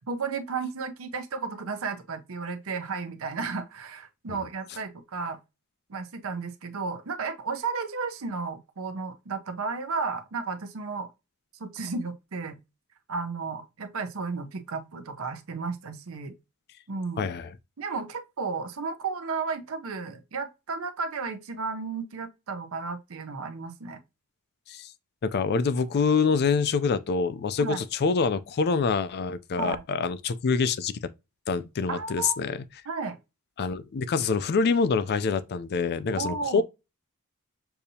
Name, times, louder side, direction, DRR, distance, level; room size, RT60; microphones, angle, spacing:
voice 1, 0.1-5.4 5.9-11.1 11.6-12.6 13.1-16.3 16.9-17.3 17.8-24.0 27.6-27.8 29.6-29.8 31.9-32.4 32.9-33.2 36.1-36.6, right 4 dB, 65° right, 0.7 m, -33 dB
voice 2, 17.2-17.5 24.7-24.9 25.2-30.9 31.5-32.6 33.6-36.6, left 5 dB, 50° left, 0.4 m, -26 dB
6.7 x 2.7 x 2.7 m
head